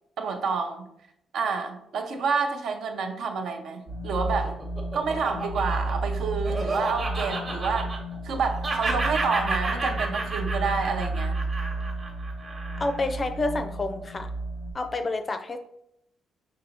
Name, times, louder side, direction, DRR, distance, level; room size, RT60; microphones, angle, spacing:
voice 1, 0.2-0.9 1.3-4.6 4.9-7.9 8.2-11.4, right 5 dB, 70° right, 6 dB, 0.5 m, -29 dB
sound 1, 3.9-14.7, right 2 dB, 85° right, 1.0 m, -32 dB
Laughter, 4.1-8.3 8.6-13.1, right 3 dB, 40° right, 1.0 m, -31 dB
voice 2, 12.8-14.3 14.7-15.6, left 2 dB, 30° left, 7 dB, 0.4 m, -29 dB
5.3 x 2.8 x 2.9 m, 0.79 s
cardioid pair, 90°, 0 cm